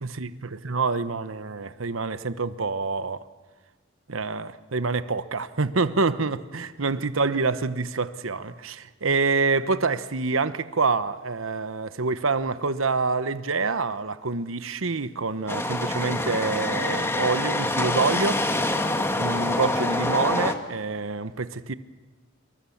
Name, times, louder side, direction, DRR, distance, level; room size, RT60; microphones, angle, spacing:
voice 1, 0.0-3.2 4.1-18.4 19.2-21.7, right 4 dB, 90° right, 1.1 m, -26 dB
sound 1, 15.5-20.6, left 1 dB, 15° left, 1.7 m, -26 dB
26.5 x 22.5 x 7.2 m
head